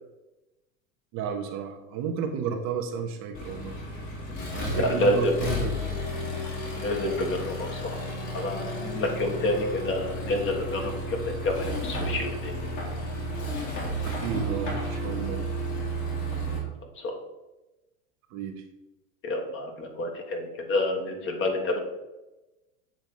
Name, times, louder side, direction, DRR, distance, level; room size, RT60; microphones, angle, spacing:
voice 1, 1.1-3.8 4.5-6.0 14.0-15.5 18.3-18.6, right 6 dB, 40° right, 4 dB, 1.0 m, -32 dB
Accelerating revving vroom, 3.3-16.6, equal, 50° left, 2.5 m, -32 dB
voice 2, 4.3-5.4 6.8-8.0 8.3-12.7 16.3-16.6 17.0-17.2 19.2-21.8, left 1 dB, 30° left, 3 dB, 1.4 m, -29 dB
7.7 x 3.6 x 5.4 m, 1.0 s
hypercardioid pair, 105°, 42 cm